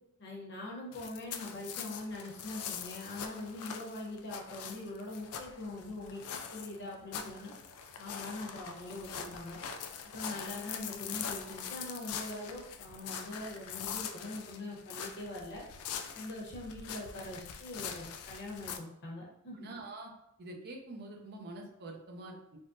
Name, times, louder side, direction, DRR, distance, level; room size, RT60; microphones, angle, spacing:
voice 1, 0.2-6.2 6.5-7.5 8.0-9.6 10.1-15.6 16.1-19.7, left 2 dB, 50° left, -2 dB, 0.8 m, -43 dB
sound 1, 0.9-18.8, left 7 dB, 70° left, 0.3 m, -43 dB
voice 2, 19.6-20.1 20.4-22.6, right 2 dB, 50° right, 1 dB, 0.5 m, -46 dB
3.5 x 2.0 x 2.6 m, 0.81 s
head